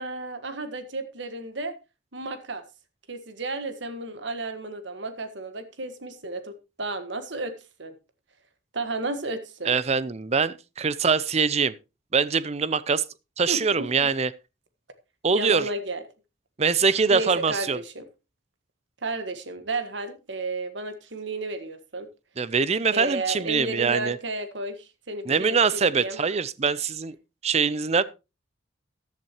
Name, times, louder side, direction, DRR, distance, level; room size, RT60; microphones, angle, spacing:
voice 1, 0.0-1.7 2.1-2.6 3.1-7.5 7.8-7.9 8.7-9.7 13.5-13.9 15.3-16.0 17.1-18.0 19.0-22.1 22.9-26.2, right 2 dB, 70° right, 1.6 m, -32 dB
voice 2, 9.7-11.7 12.1-13.0 13.4-14.3 15.2-15.7 16.6-17.8 22.4-24.2 25.3-27.2 27.4-28.0, right 5 dB, 35° right, 0.5 m, -23 dB
14.0 x 10.5 x 3.0 m
head